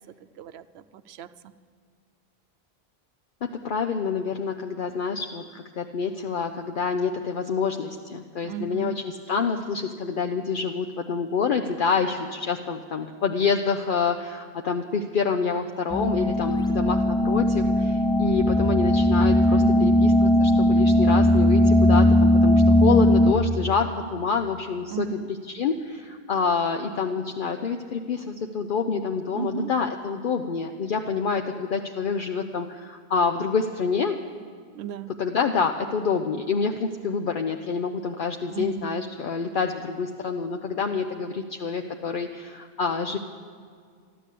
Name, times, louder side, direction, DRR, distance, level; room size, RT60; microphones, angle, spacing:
voice 1, 0.4-1.3 8.4-9.0 19.6-20.0 24.9-25.3 29.3-29.7 34.7-35.1 38.5-39.0, right 8 dB, 90° right, 13 dB, 0.9 m, -34 dB
voice 2, 3.4-34.2 35.2-43.2, left 5 dB, 60° left, 4 dB, 0.8 m, -27 dB
sound 1, 15.9-23.3, left 1 dB, 5° left, 0.4 m, -19 dB
13.0 x 12.0 x 8.3 m, 2.1 s
omnidirectional pair, 1.0 m